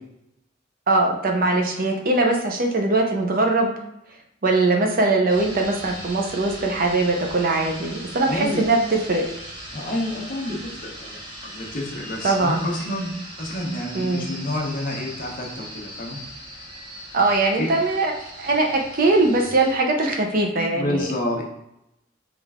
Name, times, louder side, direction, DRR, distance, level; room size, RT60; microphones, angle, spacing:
voice 1, 0.9-3.7 4.4-9.2 12.2-12.6 13.9-14.3 17.1-21.1, right 2 dB, 50° right, 2 dB, 0.7 m, -21 dB
sound 1, 5.3-19.7, right 1 dB, 25° right, 1.1 m, -39 dB
voice 2, 8.3-8.6 9.7-16.2 17.6-17.7 20.7-21.4, left 1 dB, 45° left, -1 dB, 1.0 m, -29 dB
3.6 x 3.3 x 3.6 m, 0.83 s
head